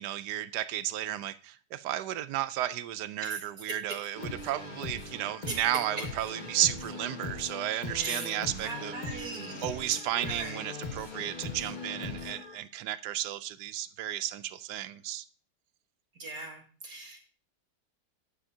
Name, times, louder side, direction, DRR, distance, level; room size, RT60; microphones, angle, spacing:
voice 1, 0.0-9.3 9.6-15.3, right 13 dB, 85° right, 1.2 m, -33 dB
sound 1, 4.1-12.6, left 3 dB, 30° left, 1.6 m, -40 dB
voice 2, 8.0-10.6 16.2-17.2, right 3 dB, 65° right, 2.3 m, -40 dB
11.0 x 7.5 x 2.7 m
omnidirectional pair, 1.8 m